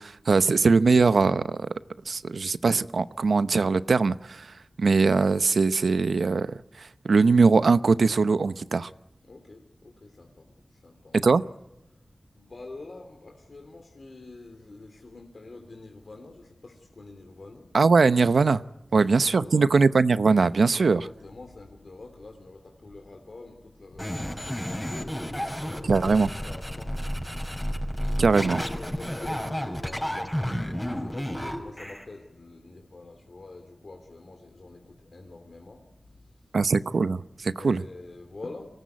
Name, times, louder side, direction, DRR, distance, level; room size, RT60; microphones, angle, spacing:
voice 1, 0.0-1.7 2.1-8.9 11.2-11.4 17.7-18.6 18.9-21.1 25.9-26.3 28.2-28.6 36.5-37.8, right 4 dB, 85° right, 13 dB, 0.8 m, -21 dB
voice 2, 9.2-11.2 12.3-17.7 19.0-19.6 20.7-27.6 28.0-35.8 37.5-38.8, left 3 dB, 65° left, 3 dB, 3.1 m, -46 dB
sound 1, 24.0-32.0, equal, 10° left, 5.6 m, -31 dB
24.5 x 19.0 x 9.5 m, 0.99 s
wide cardioid pair, 65°, 0 cm